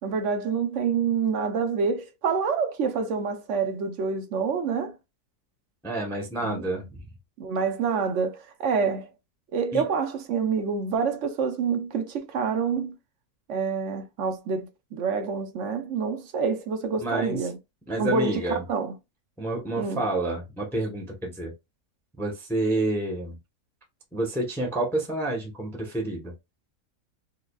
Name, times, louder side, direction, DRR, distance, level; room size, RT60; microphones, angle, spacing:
voice 1, 0.0-5.0 6.4-6.8 7.4-9.1 9.5-13.0 13.5-17.6 18.0-18.9 19.8-20.1, right 5 dB, 60° right, 0.9 m, -27 dB
voice 2, 5.8-7.1 9.7-9.8 17.0-17.5 17.9-18.6 19.4-21.5 22.2-23.4 24.1-26.3, right 2 dB, ahead, 0.8 m, -29 dB
4.8 x 2.2 x 2.3 m
omnidirectional pair, 1.6 m